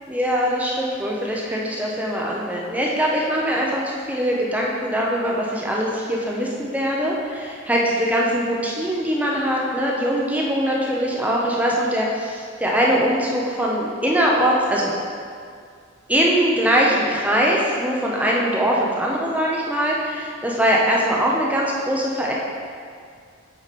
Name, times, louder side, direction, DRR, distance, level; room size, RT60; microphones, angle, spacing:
voice 1, 0.1-14.9 16.1-22.3, equal, 5° right, -3 dB, 0.7 m, -22 dB
8.2 x 5.0 x 4.2 m, 2.2 s
head